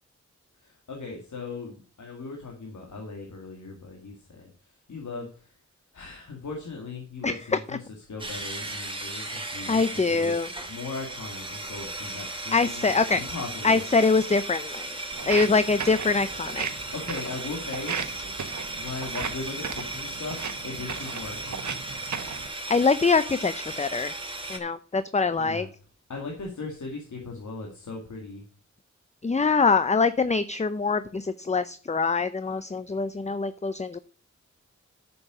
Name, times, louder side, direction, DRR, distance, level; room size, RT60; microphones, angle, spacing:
voice 1, 0.6-5.6 5.9-10.4 10.7-13.8 16.9-18.0 18.7-21.7 25.4-25.7 26.1-28.4, left 3 dB, 85° left, 1 dB, 2.2 m, -38 dB
sound 1, 8.2-24.6, right 2 dB, 15° right, 3.0 m, -36 dB
voice 2, 9.7-10.5 12.5-13.2 13.6-15.0 15.3-16.7 22.7-24.1 24.5-25.7 29.2-34.0, left 4 dB, 25° left, 12 dB, 0.6 m, -24 dB
Walk footsteps, 15.1-22.5, right 6 dB, 75° right, 1.2 m, -36 dB
9.7 x 7.0 x 5.0 m, 0.38 s
wide cardioid pair, 70°, 29 cm